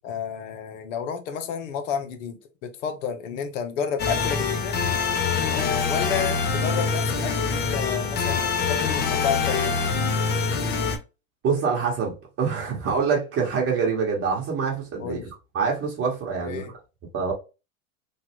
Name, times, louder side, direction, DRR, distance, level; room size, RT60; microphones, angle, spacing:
voice 1, 0.0-4.8 5.5-9.8 15.0-15.3 16.4-16.7, left 7 dB, 75° left, 0.8 m, -31 dB
sound 1, 4.0-11.0, left 5 dB, 25° left, 0.6 m, -25 dB
voice 2, 11.4-15.2 15.5-16.6 17.1-17.3, right 5 dB, 35° right, 1.0 m, -25 dB
3.2 x 2.3 x 2.8 m
supercardioid pair, 110°, 39 cm